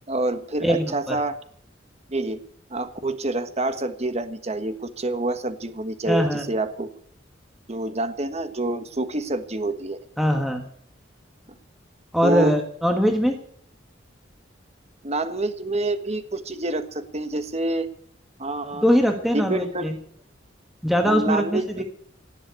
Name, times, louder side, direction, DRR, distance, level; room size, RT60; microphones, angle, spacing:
voice 1, 0.1-1.3 2.1-2.4 2.7-6.9 7.7-10.0 12.2-12.5 15.0-17.9 18.4-18.8 19.3-19.9 21.0-21.8, right 2 dB, 35° right, 10 dB, 1.4 m, -27 dB
voice 2, 0.6-1.2 6.1-6.4 10.2-10.6 12.1-13.4 18.7-19.9 20.8-21.8, equal, ahead, 3 dB, 1.6 m, -21 dB
18.5 x 7.7 x 9.6 m, 0.62 s
head